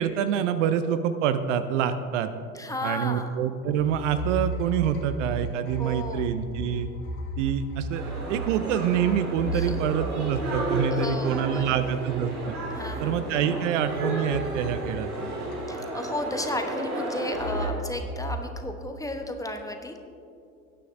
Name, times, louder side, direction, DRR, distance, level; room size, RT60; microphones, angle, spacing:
voice 1, 0.0-2.3 2.8-6.9 7.4-12.6 13.0-15.3, right 8 dB, 60° right, 11 dB, 0.7 m, -26 dB
voice 2, 2.5-3.3 5.8-6.3 9.5-9.8 10.9-12.0 12.7-13.2 15.7-20.0, left 1 dB, 10° left, 5 dB, 0.9 m, -34 dB
sound 1, 3.7-14.0 14.3-16.1 17.3-18.4, right 1 dB, 75° left, 1.7 m, -35 dB
sound 2, 7.9-17.7, right 1 dB, 80° right, 2.3 m, -33 dB
18.0 x 9.5 x 2.6 m, 2.6 s
figure-of-eight pair, 75°, 43 cm